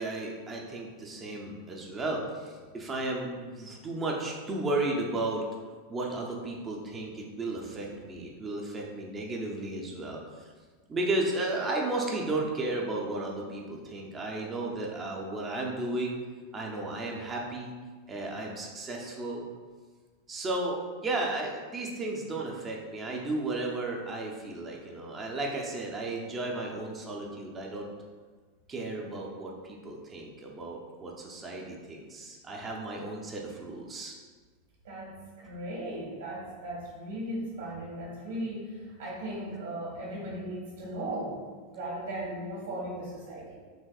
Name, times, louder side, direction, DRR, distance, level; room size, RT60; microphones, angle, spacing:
voice 1, 0.0-5.4 5.9-10.2 10.9-16.2 16.5-17.7 18.1-19.4 20.3-27.9 28.7-34.1, right 2 dB, 20° right, -1 dB, 0.6 m, -34 dB
voice 2, 34.8-41.4 41.7-43.6, right 1 dB, 85° right, -4 dB, 1.5 m, -37 dB
6.1 x 2.5 x 2.3 m, 1.5 s
supercardioid pair, 155°, 0 cm